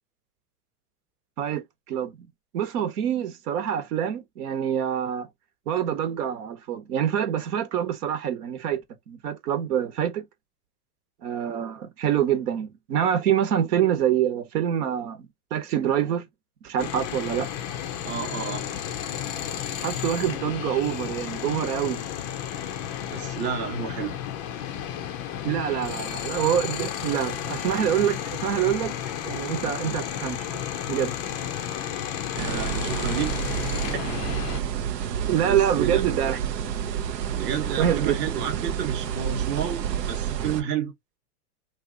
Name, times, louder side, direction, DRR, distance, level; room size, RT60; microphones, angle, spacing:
voice 1, 1.4-2.3 2.5-5.3 5.7-10.2 11.2-16.2 16.6-17.5 19.8-22.0 25.4-28.9 29.2-30.5 30.9-31.2 33.9-34.0 35.3-36.5 37.8-38.2, right 9 dB, 70° right, 1.1 m, -26 dB
sound 1, 16.8-34.6, left 10 dB, 30° left, 0.4 m, -32 dB
voice 2, 18.0-18.7 23.1-24.2 32.3-33.3 35.4-36.0 37.3-40.9, right 8 dB, 25° right, 0.8 m, -31 dB
sound 2, 32.4-40.6, right 9 dB, 90° right, 0.7 m, -29 dB
2.8 x 2.4 x 3.7 m
hypercardioid pair, 125°, 48 cm